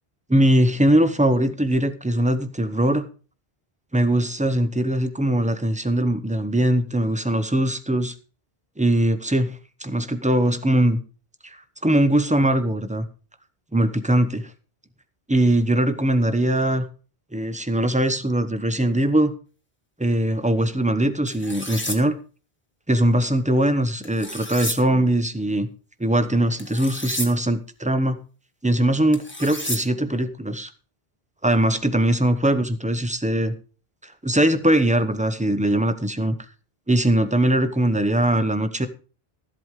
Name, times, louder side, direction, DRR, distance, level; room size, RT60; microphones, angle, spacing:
voice 1, 0.3-3.1 3.9-8.1 8.8-9.6 9.8-11.0 11.4-13.1 13.7-14.5 15.3-16.9 17.3-19.3 20.0-22.2 22.9-25.7 26.0-28.2 28.6-30.7 31.4-33.5 34.0-36.4 36.9-38.9, right 1 dB, 10° right, 10 dB, 0.8 m, -21 dB
sound 1, 21.3-22.0 24.0-24.8 26.6-27.3 29.1-29.8, left 1 dB, 10° left, 1.6 m, -31 dB
13.5 x 7.9 x 4.8 m, 0.37 s
omnidirectional pair, 1.1 m